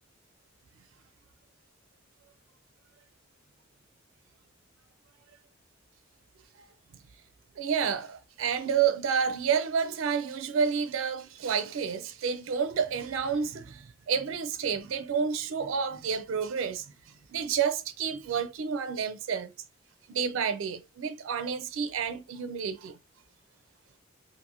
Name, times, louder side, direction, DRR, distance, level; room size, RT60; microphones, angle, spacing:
voice 1, 7.6-16.9 17.3-19.5 20.1-23.0, right 6 dB, 90° right, 0.4 m, -30 dB
2.8 x 2.5 x 2.5 m
head